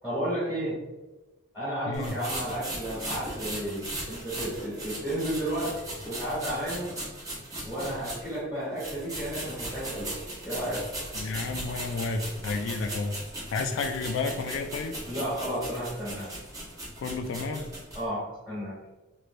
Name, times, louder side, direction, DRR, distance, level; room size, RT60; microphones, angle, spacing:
voice 1, 0.0-0.8 1.5-5.7 6.0-6.9 7.6-10.9 15.0-16.3 17.9-18.8, right 1 dB, ahead, -10 dB, 1.2 m, -32 dB
sound 1, 1.9-8.4 8.8-18.0, right 1 dB, 15° right, 0.8 m, -38 dB
voice 2, 11.1-13.2 13.5-15.0 17.0-17.7, left 4 dB, 75° left, 6 dB, 0.3 m, -31 dB
3.1 x 3.0 x 2.5 m, 1.2 s
head